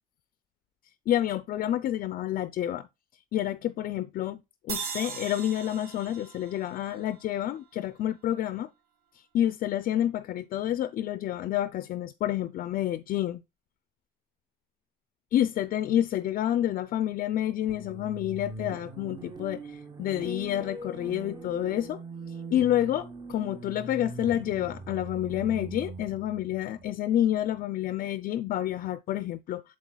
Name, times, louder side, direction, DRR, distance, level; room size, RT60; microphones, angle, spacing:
voice 1, 1.1-2.9 3.3-4.3 4.7-8.7 9.3-13.4 15.3-22.0 22.5-29.6, left 12 dB, 55° left, 0.4 m, -29 dB
sound 1, 4.7-8.0, right 6 dB, 65° right, 1.0 m, -40 dB
sound 2, 17.7-27.6, right 3 dB, 25° right, 0.9 m, -42 dB
7.5 x 7.3 x 2.3 m
cardioid pair, 110°, 17 cm